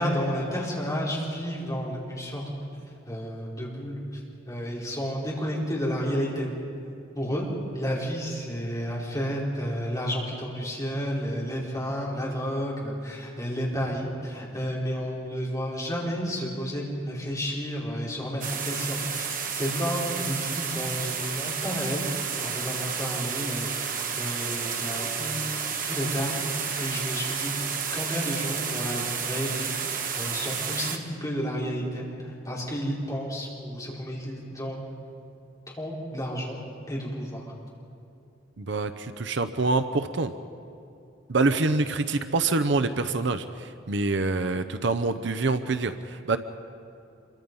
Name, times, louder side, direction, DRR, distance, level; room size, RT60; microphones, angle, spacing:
voice 1, 0.0-2.5 3.1-4.0 4.5-6.5 7.1-7.5 7.7-22.1 22.4-25.4 25.8-26.4 26.8-27.5 27.9-34.8 35.8-36.6 36.9-37.5, equal, 15° left, -5 dB, 4.7 m, -31 dB
sound 1, 18.4-31.0, right 6 dB, 40° right, 1.5 m, -31 dB
voice 2, 38.6-40.3 41.3-46.4, right 3 dB, 60° right, 10 dB, 0.7 m, -26 dB
27.0 x 23.5 x 5.5 m, 2.6 s
head